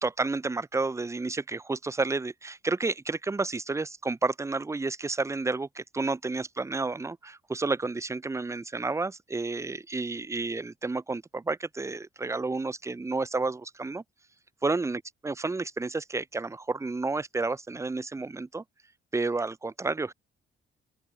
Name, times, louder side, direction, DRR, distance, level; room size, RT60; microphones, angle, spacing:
voice 1, 0.0-14.0 14.6-18.6 19.1-20.1, right 3 dB, 15° right, 0.7 m, -31 dB
open air
cardioid pair, 90°, 20 cm